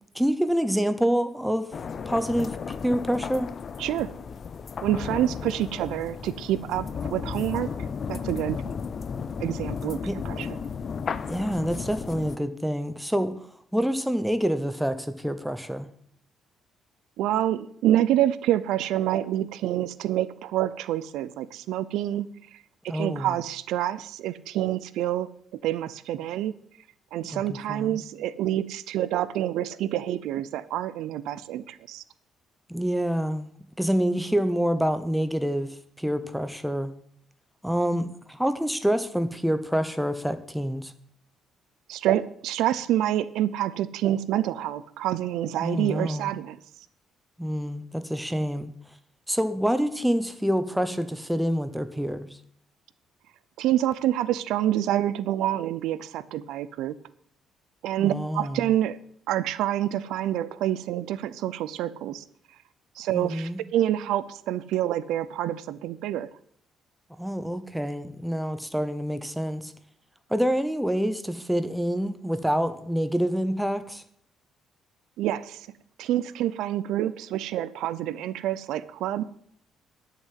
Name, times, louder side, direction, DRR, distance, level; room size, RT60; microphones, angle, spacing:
voice 1, 0.1-1.7 2.1-3.5 10.0-10.2 11.3-13.5 13.7-15.9 22.9-23.4 27.2-28.0 32.7-33.5 33.8-36.9 37.6-40.9 45.6-46.3 47.4-48.7 49.3-52.4 58.0-58.7 63.1-63.6 67.2-69.7 70.3-74.0, equal, ahead, 10 dB, 0.8 m, -27 dB
sound 1, 1.7-12.4, left 6 dB, 40° left, 0.6 m, -34 dB
voice 2, 4.8-7.7 8.1-8.7 9.4-10.0 10.2-10.5 17.2-22.3 22.8-25.3 25.6-26.5 27.1-32.0 41.9-46.6 53.6-56.9 57.8-59.0 59.3-62.2 63.0-66.3 75.2-75.7 76.0-79.2, right 12 dB, 90° right, 16 dB, 0.6 m, -27 dB
11.0 x 6.8 x 7.6 m, 0.64 s
cardioid pair, 140°, 0 cm